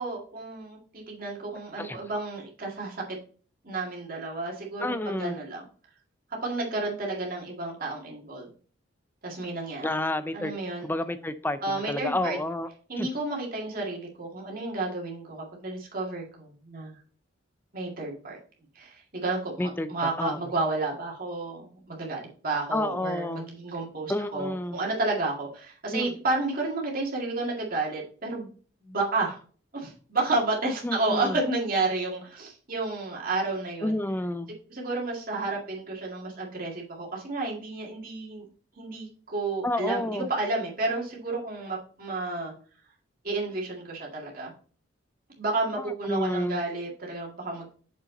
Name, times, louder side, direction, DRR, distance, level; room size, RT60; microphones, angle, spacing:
voice 1, 0.0-3.2 3.6-5.7 6.4-8.5 9.2-9.9 10.3-10.9 11.6-12.4 12.9-17.0 17.7-18.4 18.8-28.5 28.8-29.4 29.7-34.0 34.7-38.5 38.8-42.5 43.2-44.5 45.4-47.7, right 2 dB, 50° right, -2 dB, 2.2 m, -31 dB
voice 2, 4.8-5.4 9.8-10.5 10.8-12.7 13.0-13.1 19.6-20.4 22.7-23.5 24.1-24.8 25.9-26.1 30.8-31.4 33.8-34.5 39.6-40.3 46.0-46.6, left 1 dB, 10° left, 11 dB, 0.5 m, -30 dB
6.9 x 5.5 x 3.8 m, 0.41 s
head